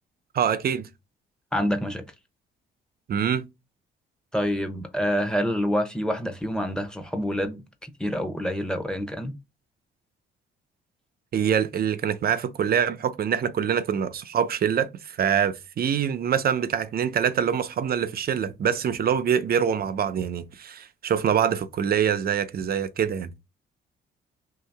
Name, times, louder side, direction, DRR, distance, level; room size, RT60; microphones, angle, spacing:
voice 1, 0.3-0.9 3.1-3.4 11.3-23.3, right 8 dB, 50° right, 0.6 m, -25 dB
voice 2, 1.5-2.0 4.3-7.6 8.0-9.3, equal, 5° left, 0.9 m, -27 dB
3.0 x 2.8 x 4.5 m
cardioid pair, 90°, 20 cm